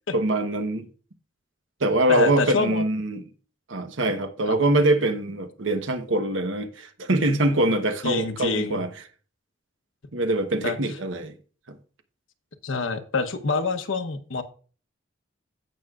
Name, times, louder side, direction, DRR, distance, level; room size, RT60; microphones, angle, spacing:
voice 1, 0.1-0.9 1.8-3.2 3.7-8.9 10.1-11.3, right 1 dB, 80° right, 1.1 m, -23 dB
voice 2, 2.1-2.8 4.5-4.6 8.0-8.8 10.6-10.8 12.6-14.4, left 4 dB, 85° left, 1.0 m, -26 dB
15.5 x 6.3 x 2.4 m
head